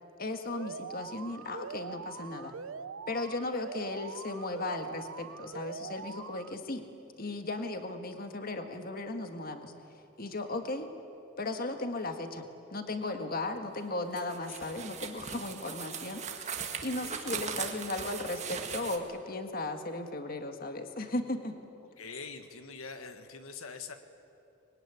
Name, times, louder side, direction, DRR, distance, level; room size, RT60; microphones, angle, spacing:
voice 1, 0.2-2.5 3.1-6.8 7.2-9.7 10.2-10.9 11.4-21.5, left 2 dB, 45° left, 6 dB, 1.7 m, -36 dB
Alarm, 0.5-6.5, right 5 dB, 70° right, 0.6 m, -43 dB
sound 1, 14.2-19.0, right 6 dB, 35° right, 1.7 m, -39 dB
voice 2, 22.0-23.9, left 5 dB, 80° left, 8 dB, 1.6 m, -43 dB
24.5 x 22.5 x 9.9 m, 3.0 s
head